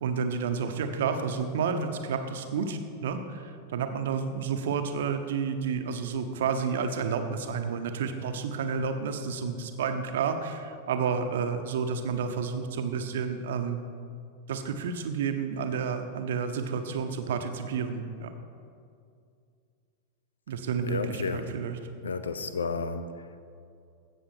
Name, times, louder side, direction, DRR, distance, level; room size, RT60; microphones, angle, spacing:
voice 1, 0.0-13.8 14.5-18.3 20.5-21.8, right 6 dB, 60° right, 7 dB, 0.9 m, -30 dB
voice 2, 20.8-21.6 22.0-23.4, left 4 dB, 70° left, 11 dB, 0.6 m, -32 dB
16.0 x 6.8 x 4.5 m, 2.4 s
figure-of-eight pair, 90°, 0 cm